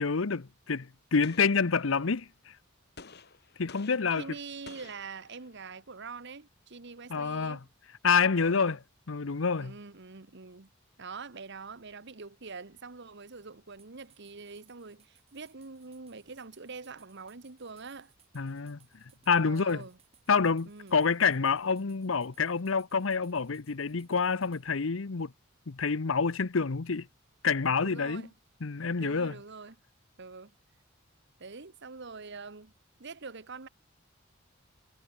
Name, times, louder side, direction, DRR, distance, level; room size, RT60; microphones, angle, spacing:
voice 1, 0.0-2.5 3.6-4.2 7.1-7.6 8.0-8.8 9.1-9.7 18.3-18.8 19.3-19.8 20.3-25.3 25.7-27.1 27.4-28.2 28.6-29.3, left 5 dB, 70° left, 0.8 m, -27 dB
Gunshot gunfire, 1.2-2.3 3.0-5.7, left 4 dB, 55° left, 2.4 m, -53 dB
voice 2, 4.1-7.6 8.3-8.8 9.6-10.7 11.0-18.1 19.4-20.0 20.7-21.0 27.8-28.3 29.0-29.8 30.2-30.5 31.4-32.7 33.0-33.7, right 4 dB, 60° right, 1.3 m, -45 dB
sound 1, 13.8-24.7, right 8 dB, 30° right, 6.4 m, -66 dB
head